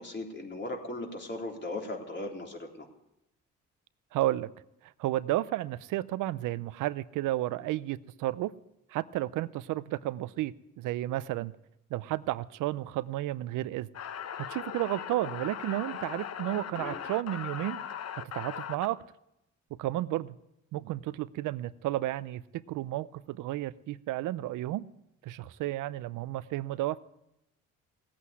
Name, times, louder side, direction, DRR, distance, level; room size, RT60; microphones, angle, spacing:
voice 1, 0.0-2.9 16.8-17.0, left 2 dB, 35° left, 1 dB, 3.5 m, -38 dB
voice 2, 4.1-4.5 5.0-8.5 8.9-11.5 11.9-13.9 14.4-17.8 18.1-19.0 19.7-20.4 20.7-24.9 25.2-27.0, right 15 dB, 85° right, 16 dB, 0.6 m, -32 dB
sound 1, 13.9-18.9, left 9 dB, 55° left, 0.9 m, -39 dB
17.0 x 8.5 x 9.6 m, 0.86 s
cardioid pair, 90°, 30 cm